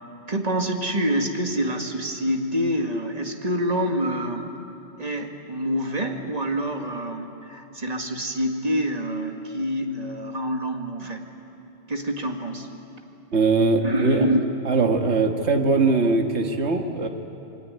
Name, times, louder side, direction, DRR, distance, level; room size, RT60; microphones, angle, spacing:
voice 1, 0.3-4.5 5.0-11.2 11.9-12.7 13.8-14.4, equal, 35° right, 3 dB, 2.1 m, -26 dB
voice 2, 13.3-14.3 14.7-17.1, right 3 dB, 65° right, 3 dB, 2.0 m, -21 dB
27.5 x 22.0 x 9.6 m, 2.8 s
omnidirectional pair, 1.2 m